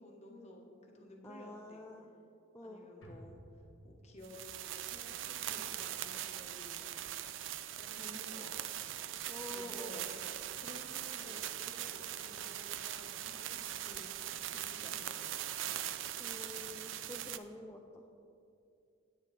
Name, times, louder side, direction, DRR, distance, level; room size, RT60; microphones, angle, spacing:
voice 1, 0.0-1.8 2.6-3.4 3.8-6.9 7.8-8.6 9.5-14.2 14.5-15.5, left 1 dB, 35° left, 1 dB, 1.2 m, -54 dB
voice 2, 1.2-2.1 2.5-2.9 9.3-10.0 11.2-11.5 16.2-18.0, left 1 dB, 10° left, 0 dB, 0.4 m, -48 dB
sound 1, 3.0-7.5 7.8-7.9, equal, 80° left, 1.5 m, -59 dB
sound 2, 4.2-17.4, right 12 dB, 70° right, 0.4 m, -41 dB
8.8 x 8.8 x 4.1 m, 2.6 s
head